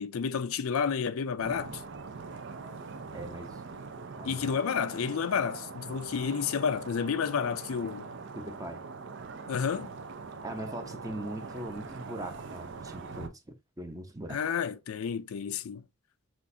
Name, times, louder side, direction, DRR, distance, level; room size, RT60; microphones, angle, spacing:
voice 1, 0.0-1.8 4.2-8.1 9.5-9.9 14.3-15.8, left 6 dB, 85° left, 0.4 m, -30 dB
sound 1, 1.4-13.3, right 4 dB, 60° right, 0.5 m, -43 dB
voice 2, 3.1-3.6 4.2-4.6 8.4-8.8 10.4-13.3 13.8-14.4, right 1 dB, 15° right, 0.7 m, -40 dB
6.2 x 2.5 x 2.7 m
head